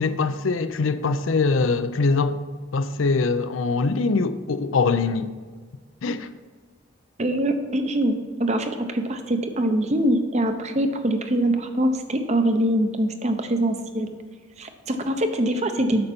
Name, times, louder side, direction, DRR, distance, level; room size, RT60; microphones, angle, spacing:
voice 1, 0.0-2.4 2.7-5.3 6.0-6.3, left 4 dB, 75° left, 0.5 m, -23 dB
voice 2, 7.2-14.1 14.6-16.1, right 1 dB, 35° right, 0.8 m, -23 dB
8.9 x 6.6 x 4.4 m
head